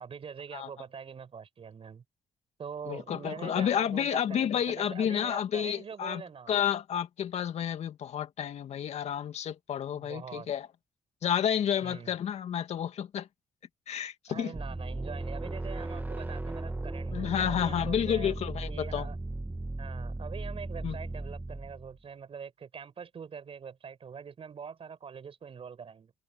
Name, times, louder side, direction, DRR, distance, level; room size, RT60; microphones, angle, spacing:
voice 1, 0.0-2.0 2.6-6.5 9.9-10.5 11.8-12.1 14.3-18.4 18.7-19.2 19.8-26.1, right 6 dB, 55° right, 5.7 m, -44 dB
voice 2, 2.9-6.2 6.5-10.7 11.2-13.3 13.9-14.5 17.1-19.1 20.8-21.0, left 9 dB, 70° left, 2.4 m, -30 dB
sound 1, 14.5-22.0, right 2 dB, 15° right, 1.7 m, -36 dB
supercardioid pair, 55°, 12 cm